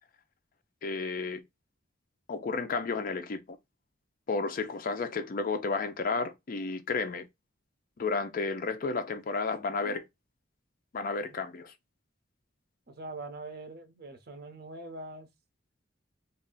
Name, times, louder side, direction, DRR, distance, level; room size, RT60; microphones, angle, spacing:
voice 1, 0.8-1.4 2.3-3.6 4.3-7.3 8.0-10.0 10.9-11.7, left 4 dB, 45° left, 0.4 m, -32 dB
voice 2, 12.9-15.3, right 2 dB, 55° right, 0.7 m, -43 dB
2.4 x 2.0 x 3.6 m
head